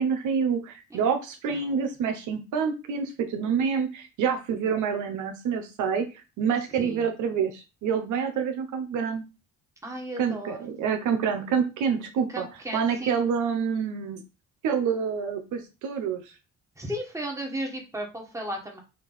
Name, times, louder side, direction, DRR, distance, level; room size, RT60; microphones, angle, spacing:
voice 1, 0.0-9.2 10.2-12.5 12.7-14.2 14.6-16.2, right 6 dB, 80° right, 6 dB, 0.8 m, -27 dB
voice 2, 1.5-1.9 6.8-7.0 9.8-10.6 12.3-13.2 16.8-18.8, equal, 10° right, 1 dB, 1.5 m, -35 dB
4.5 x 2.5 x 4.1 m, 0.29 s
cardioid pair, 90°, 30 cm